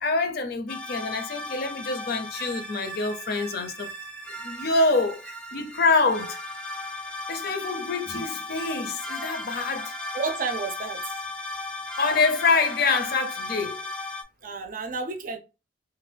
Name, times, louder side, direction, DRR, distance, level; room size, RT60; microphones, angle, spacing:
voice 1, 0.0-3.9 4.4-5.2 5.5-6.4 7.3-9.9 12.0-13.8, left 3 dB, 55° left, 0.5 m, -25 dB
sound 1, 0.7-14.2, left 2 dB, 5° left, 0.4 m, -36 dB
voice 2, 10.1-11.0 14.4-15.4, right 4 dB, 50° right, 0.5 m, -31 dB
3.1 x 2.3 x 3.2 m
head